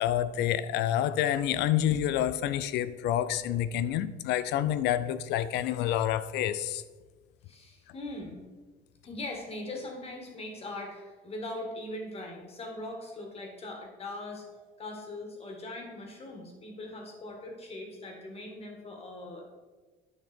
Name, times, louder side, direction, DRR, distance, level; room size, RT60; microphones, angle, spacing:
voice 1, 0.0-6.8, left 11 dB, 85° left, 0.5 m, -28 dB
voice 2, 7.5-8.4 9.0-14.4 14.8-19.4, left 2 dB, 35° left, 1.9 m, -40 dB
9.5 x 5.9 x 4.4 m
cardioid pair, 120°, 17 cm